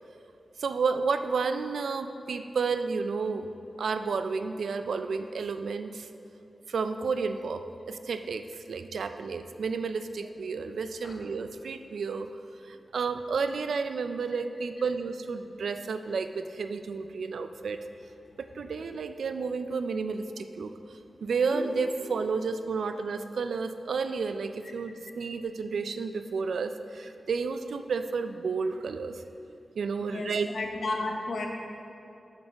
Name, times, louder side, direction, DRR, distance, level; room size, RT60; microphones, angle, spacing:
voice 1, 0.6-3.5 3.8-6.1 6.7-12.3 12.6-17.8 18.4-29.2 29.8-30.5, right 5 dB, 90° right, 9 dB, 0.4 m, -31 dB
sound 1, 21.4-22.5, left 1 dB, 25° left, 1.0 m, -37 dB
voice 2, 30.0-31.5, left 2 dB, 75° left, 1 dB, 0.9 m, -33 dB
7.1 x 6.4 x 4.5 m, 2.9 s
wide cardioid pair, 105°, 0 cm